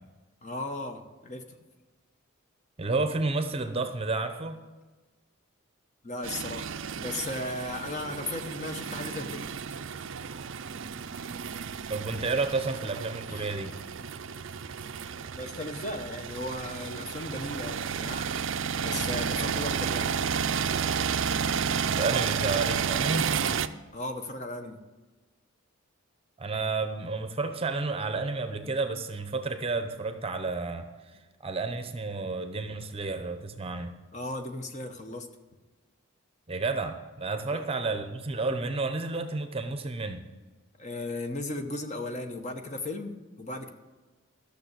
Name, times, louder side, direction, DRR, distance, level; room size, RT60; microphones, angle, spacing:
voice 1, 0.4-1.6 6.0-6.7 7.0-9.5 13.3-13.5 15.3-18.3 18.8-20.2 23.9-24.8 34.1-35.3 40.8-43.7, left 2 dB, 35° left, 6 dB, 1.0 m, -36 dB
voice 2, 2.8-4.6 11.9-13.8 21.9-23.3 26.4-33.9 36.5-40.3, right 3 dB, 25° right, 8 dB, 0.7 m, -31 dB
sound 1, 6.2-23.7, right 7 dB, 60° right, 0.5 m, -32 dB
13.0 x 6.7 x 8.1 m, 1.3 s
head